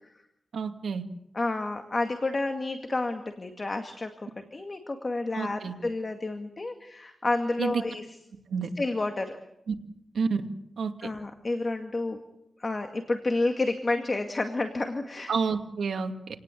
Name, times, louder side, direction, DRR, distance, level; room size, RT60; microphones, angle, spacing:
voice 1, 0.5-1.0 5.3-5.7 7.6-7.8 8.5-8.7 9.7-9.8 10.1-10.4 10.8-10.9 15.3-16.1, right 5 dB, 80° right, 5 dB, 2.4 m, -28 dB
voice 2, 1.3-8.0 8.8-9.4 11.0-12.2 12.6-15.3, left 2 dB, 30° left, 5 dB, 2.1 m, -30 dB
28.5 x 18.5 x 8.5 m, 0.83 s
wide cardioid pair, 115°, 0 cm